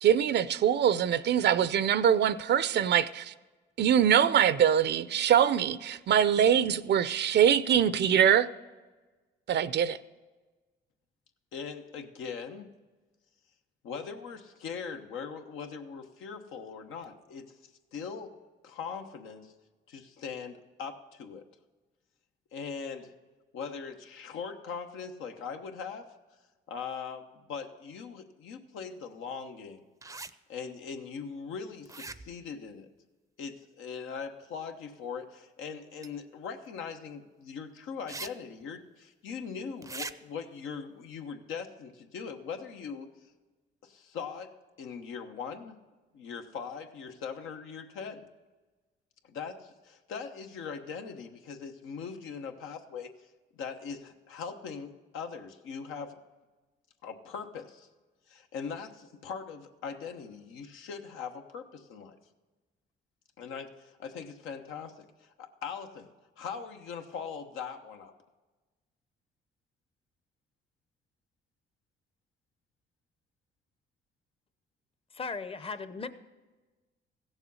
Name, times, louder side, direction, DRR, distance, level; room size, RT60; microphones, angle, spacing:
voice 1, 0.0-3.3 3.8-8.5 9.5-10.0, right 9 dB, 60° right, 0.5 m, -23 dB
voice 2, 11.5-12.7 13.8-17.5 17.9-18.3 18.6-19.5 19.9-21.5 22.5-23.1 23.5-26.1 26.7-29.9 30.5-32.9 33.4-43.1 43.8-44.5 44.8-45.8 46.1-48.3 49.2-53.1 53.5-56.2 57.0-57.9 58.3-62.1 63.4-66.1 66.4-68.1, left 6 dB, 85° left, 1.1 m, -40 dB
sound 1, 30.0-30.3 31.9-32.5 36.0-36.1 38.1-38.3 38.6-38.7 39.8-40.1, right 3 dB, 15° right, 0.5 m, -40 dB
voice 3, 75.1-76.1, left 4 dB, 30° left, 0.7 m, -37 dB
15.5 x 7.2 x 5.5 m
cardioid pair, 90°, 20 cm